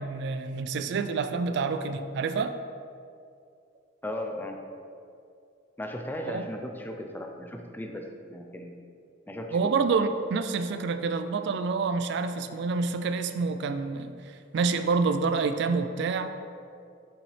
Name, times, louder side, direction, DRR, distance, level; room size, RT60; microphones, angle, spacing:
voice 1, 0.0-2.5 6.3-6.5 9.5-16.3, right 4 dB, 60° right, 9 dB, 0.3 m, -28 dB
voice 2, 4.0-4.6 5.8-8.7 9.3-9.7, left 1 dB, 10° left, 3 dB, 0.4 m, -36 dB
6.9 x 5.5 x 3.3 m, 2.4 s
head